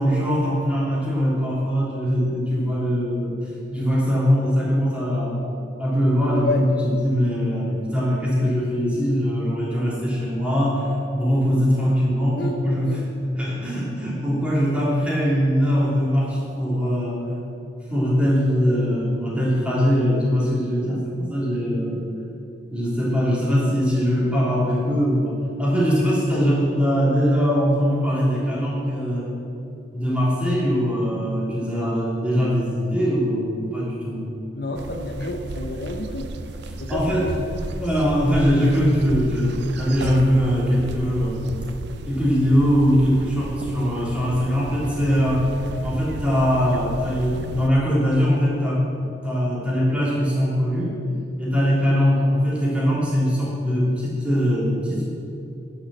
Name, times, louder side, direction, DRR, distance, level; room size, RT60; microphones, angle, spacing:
voice 1, 0.0-5.4 5.8-10.9 11.1-17.3 17.8-22.0 22.7-29.3 29.9-34.2 36.9-37.3 37.8-41.5 42.1-45.5 45.8-48.8 49.2-51.0 51.4-55.1, equal, 5° right, -7 dB, 3.1 m, -21 dB
voice 2, 12.4-13.1 34.6-36.3 36.6-37.5, left 2 dB, 60° left, 1 dB, 0.8 m, -30 dB
sound 1, 34.7-47.7, right 2 dB, 65° right, 0.5 m, -34 dB
9.9 x 7.0 x 7.6 m, 2.7 s
head